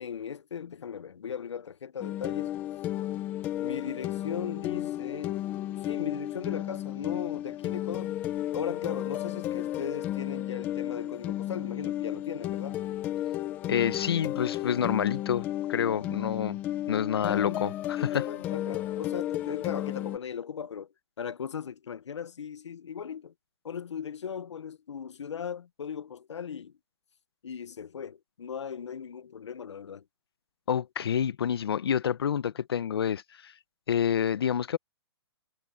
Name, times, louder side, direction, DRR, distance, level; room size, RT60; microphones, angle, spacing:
voice 1, 0.0-2.6 3.6-5.4 5.7-8.2 8.5-12.8 17.2-20.9 21.2-23.3 23.6-26.7 27.4-30.0, left 7 dB, 90° left, 1.0 m, -38 dB
sound 1, 2.0-20.2, left 13 dB, 10° left, 0.8 m, -33 dB
voice 2, 13.7-16.6 16.9-18.3 30.7-33.5 33.9-34.8, left 8 dB, 60° left, 0.9 m, -28 dB
hypercardioid pair, 175°, 14 cm